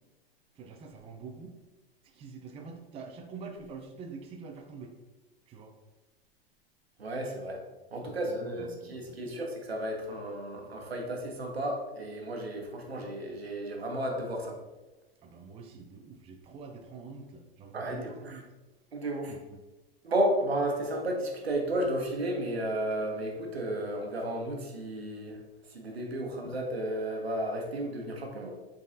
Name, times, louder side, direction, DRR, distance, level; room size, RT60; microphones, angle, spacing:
voice 1, 0.5-1.6 2.0-4.9 5.5-5.7 8.0-9.4 15.2-18.5 19.3-19.4, right 4 dB, 20° right, 3 dB, 0.5 m, -46 dB
voice 2, 7.0-7.6 7.9-14.6 17.7-18.1 18.9-19.3 20.0-25.4 25.7-28.6, right 1 dB, 85° right, 2 dB, 1.0 m, -33 dB
5.0 x 3.9 x 2.6 m, 1.1 s
figure-of-eight pair, 95°, 30 cm